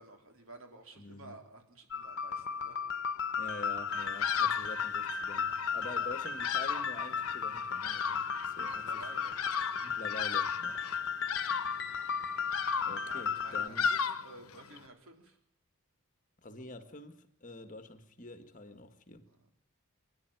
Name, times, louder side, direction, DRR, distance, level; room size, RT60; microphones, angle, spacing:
voice 1, 0.0-2.8 3.1-3.4 5.8-6.0 8.6-9.5 13.0-15.4 16.7-16.8 19.3-19.5, right 2 dB, 60° right, 3.8 m, -53 dB
voice 2, 1.0-1.4 3.4-9.0 9.8-10.9 12.8-13.9 16.4-19.3, left 2 dB, 35° left, 1.7 m, -47 dB
sound 1, 1.9-13.7, left 6 dB, 50° left, 1.3 m, -35 dB
Bird vocalization bird call bird song, 3.9-14.9, left 7 dB, 75° left, 1.1 m, -36 dB
26.0 x 10.5 x 9.3 m
head